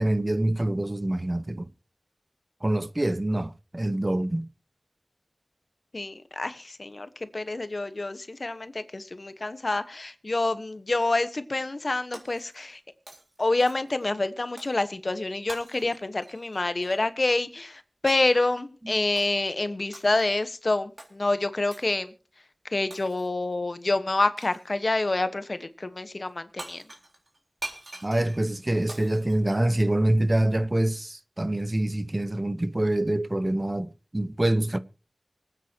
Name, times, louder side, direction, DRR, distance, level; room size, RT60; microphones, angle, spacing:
voice 1, 0.0-1.7 2.6-4.5 18.9-19.0 28.0-34.8, right 1 dB, 35° right, 0.8 m, -25 dB
voice 2, 5.9-12.8 13.4-22.1 22.7-26.8, left 2 dB, 60° left, 1.1 m, -27 dB
Shatter, 12.1-12.8 13.1-14.0 14.6-14.8 15.5-17.1 18.1-18.4 19.2-19.5 19.9-20.4 21.0-21.1 21.7-22.0 22.9-23.4 24.4-24.7 26.3-26.4 26.6-30.2, right 2 dB, 50° right, 3.7 m, -45 dB
25.5 x 9.1 x 2.8 m
wide cardioid pair, 60°, 0 cm